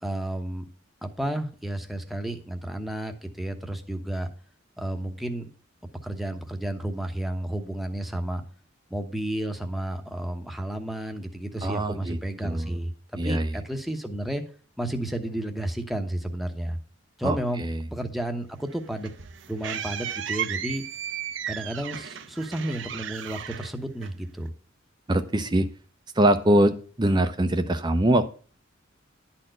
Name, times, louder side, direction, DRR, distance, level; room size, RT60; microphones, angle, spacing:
voice 1, 0.0-0.6 1.0-4.3 4.8-5.5 6.0-8.4 8.9-12.9 13.2-14.4 14.8-16.8 17.2-19.1 19.5-20.8 21.5-24.5, right 1 dB, ahead, 5 dB, 1.0 m, -32 dB
voice 2, 11.6-12.8 13.2-13.6 17.2-17.7 25.1-25.7 26.2-28.3, right 1 dB, 20° right, 9 dB, 0.6 m, -23 dB
sound 1, 18.7-24.5, right 9 dB, 65° right, 0.7 m, -35 dB
11.5 x 4.3 x 7.7 m, 0.41 s
head